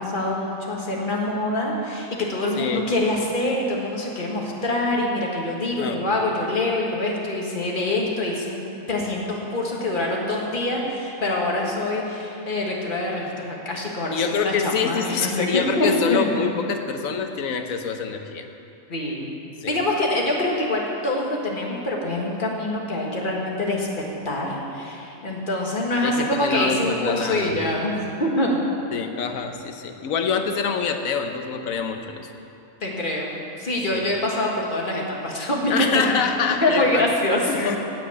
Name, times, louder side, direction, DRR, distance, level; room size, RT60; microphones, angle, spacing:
voice 1, 0.0-8.6 8.9-16.5 18.9-19.3 19.6-23.9 24.2-27.9 28.2-28.6 32.8-36.0 36.6-37.6, left 1 dB, 40° left, -2 dB, 1.7 m, -25 dB
voice 2, 2.6-2.9 5.8-6.0 14.1-18.4 19.6-19.8 26.0-27.6 28.9-32.3 33.9-34.0 35.7-37.0 37.5-37.8, left 6 dB, 75° left, 6 dB, 1.2 m, -26 dB
9.0 x 8.1 x 8.7 m, 2.8 s
omnidirectional pair, 1.4 m